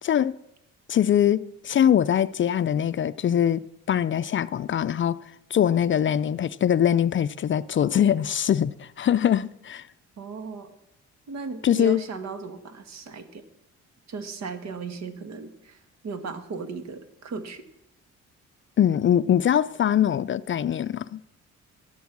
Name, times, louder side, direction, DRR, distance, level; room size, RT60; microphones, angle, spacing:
voice 1, 0.0-0.4 0.9-5.2 5.5-9.9 11.6-12.0 18.8-21.2, left 9 dB, 40° left, 0.4 m, -22 dB
voice 2, 10.2-10.7 11.3-13.4 14.1-17.6, right 4 dB, 60° right, 1.6 m, -36 dB
13.0 x 10.5 x 6.0 m
cardioid pair, 90°, 30 cm